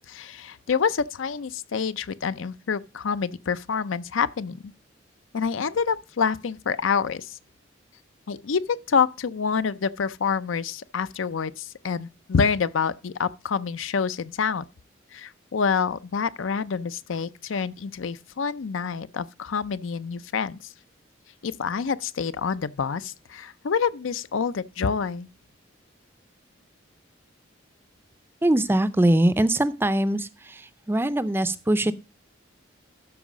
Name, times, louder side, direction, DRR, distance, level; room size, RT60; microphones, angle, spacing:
voice 1, 0.1-4.7 5.3-7.4 8.3-14.6 15.1-20.6 21.4-25.3, left 6 dB, 85° left, 0.5 m, -27 dB
voice 2, 28.4-30.3 30.9-31.9, right 1 dB, 10° right, 0.4 m, -21 dB
12.5 x 4.7 x 5.0 m
head